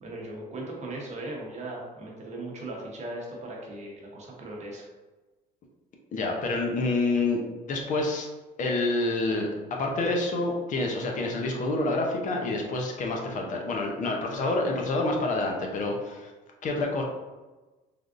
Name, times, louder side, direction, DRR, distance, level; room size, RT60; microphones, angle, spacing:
voice 1, 0.0-4.8, right 2 dB, 45° right, -2 dB, 0.8 m, -38 dB
voice 2, 6.1-7.4 7.7-8.3 8.6-16.3 16.6-17.0, left 2 dB, 50° left, 1 dB, 0.6 m, -28 dB
3.4 x 2.4 x 2.5 m, 1.2 s
cardioid pair, 110°, 17 cm